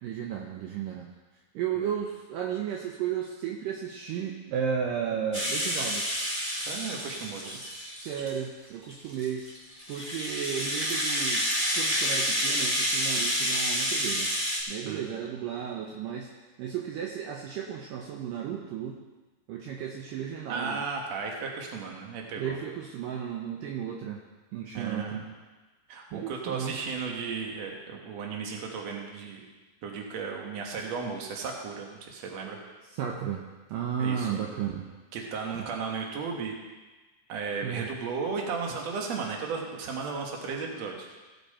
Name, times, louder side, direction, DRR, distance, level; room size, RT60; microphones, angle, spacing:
voice 1, 0.0-1.1 1.5-6.1 7.5-9.5 9.9-11.5 11.7-14.3 14.7-16.3 16.6-19.0 19.5-20.8 22.4-24.2 24.5-25.2 26.1-26.8 32.9-33.4 33.7-34.9 37.6-37.9, right 8 dB, 75° right, 0 dB, 2.4 m, -34 dB
Rattle (instrument), 5.3-8.4 8.9-14.6, equal, 20° right, 1.7 m, -29 dB
voice 2, 6.7-7.6 14.9-15.2 20.5-22.6 24.7-25.3 25.9-29.4 29.8-32.6 34.0-34.4 35.1-36.6 37.3-41.1, right 5 dB, 55° right, 0 dB, 2.3 m, -35 dB
17.0 x 7.1 x 4.3 m, 1.2 s
omnidirectional pair, 4.3 m